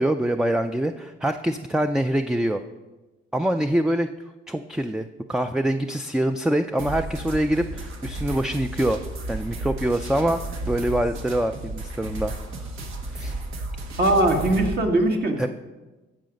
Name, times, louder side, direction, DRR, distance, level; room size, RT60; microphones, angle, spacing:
voice 1, 0.0-2.6 3.3-4.1 4.5-9.0 9.3-12.7 13.1-13.4 15.4-15.5, right 1 dB, 5° right, 7 dB, 0.4 m, -25 dB
sound 1, 6.8-14.8, right 2 dB, 85° right, 1.4 m, -33 dB
voice 2, 14.0-15.5, right 1 dB, 55° right, 3 dB, 1.6 m, -20 dB
14.0 x 4.8 x 5.2 m, 1.1 s
cardioid pair, 90°, 20 cm